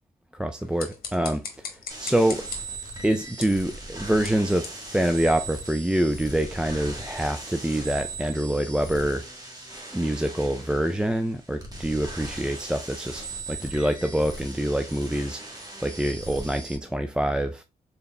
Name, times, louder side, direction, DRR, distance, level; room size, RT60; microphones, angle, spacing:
voice 1, 0.3-2.4 3.0-9.2 9.9-15.4 15.8-17.6, right 1 dB, 5° right, 0.3 m, -26 dB
sound 1, 0.5-5.8, left 6 dB, 75° left, 1.1 m, -41 dB
sound 2, 1.9-16.8, right 2 dB, 25° right, 1.5 m, -39 dB
3.9 x 3.6 x 2.3 m
cardioid pair, 70°, 15 cm